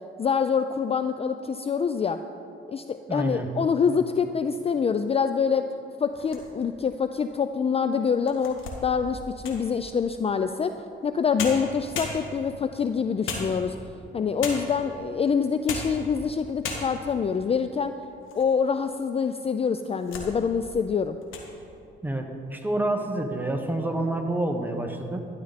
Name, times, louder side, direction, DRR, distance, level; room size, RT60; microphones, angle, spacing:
voice 1, 0.2-2.2 2.7-5.7 6.0-10.7 11.0-13.8 14.1-17.9 18.4-21.2, left 6 dB, 30° left, 10 dB, 0.4 m, -25 dB
voice 2, 3.1-3.5 22.0-25.3, right 1 dB, 10° right, 4 dB, 1.3 m, -28 dB
sound 1, 6.1-6.8 7.4-7.5 8.1-9.7 11.0-11.1 11.4-12.6 13.3-14.0 14.4-14.9 15.5-16.0 16.3-16.4 16.6-17.2 17.8-18.5 18.9-19.0 19.6-20.3 20.7-20.9 21.2-21.5, left 4 dB, 80° left, 1.7 m, -35 dB
12.5 x 11.0 x 4.2 m, 2.8 s
cardioid pair, 90°, 20 cm